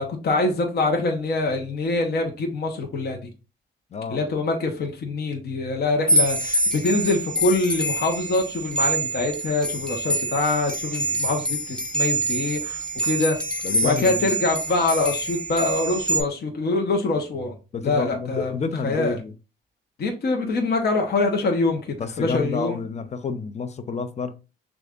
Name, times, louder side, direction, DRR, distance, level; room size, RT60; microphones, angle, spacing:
voice 1, 0.0-3.2 4.1-13.4 13.8-17.5 17.8-18.5 18.8-19.2 20.0-22.8, left 3 dB, 55° left, 1.0 m, -24 dB
voice 2, 3.9-4.2 13.6-14.3 17.7-19.3 22.0-24.3, left 5 dB, 35° left, 0.6 m, -29 dB
sound 1, 6.1-16.2, right 2 dB, 5° left, 0.9 m, -26 dB
6.3 x 2.6 x 2.5 m
cardioid pair, 90°, 20 cm